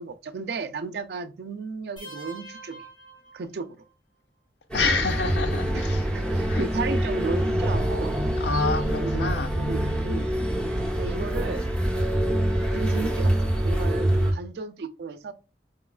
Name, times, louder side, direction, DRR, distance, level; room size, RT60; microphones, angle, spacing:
voice 1, 0.0-2.8 3.3-3.7 5.7-5.9 6.1-8.1 8.5-10.3 10.9-11.6 12.7-13.3 13.6-15.3, right 4 dB, 60° right, 0.4 m, -34 dB
sound 1, 2.0-3.9, right 2 dB, 30° left, 1.0 m, -44 dB
voice 2, 4.7-6.1 6.5-6.7 8.4-9.5, left 4 dB, 70° left, 0.5 m, -27 dB
sound 2, 4.7-14.3, right 1 dB, 5° left, 0.7 m, -25 dB
4.8 x 2.3 x 2.3 m
head